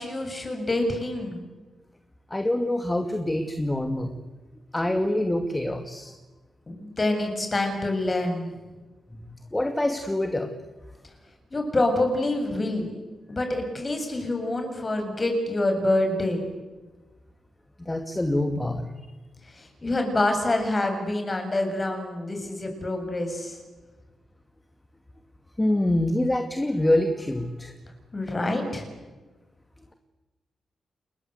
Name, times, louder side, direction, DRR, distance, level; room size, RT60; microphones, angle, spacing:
voice 1, 0.0-1.4 6.7-8.5 11.5-13.0 13.3-16.4 19.5-23.6 28.1-28.9, left 2 dB, 30° left, 5 dB, 7.6 m, -26 dB
voice 2, 2.3-4.1 4.7-6.1 9.1-10.5 17.8-18.9 25.6-27.7, left 1 dB, 15° left, 6 dB, 2.4 m, -25 dB
29.0 x 21.5 x 8.2 m, 1.2 s
cardioid pair, 70°, 0 cm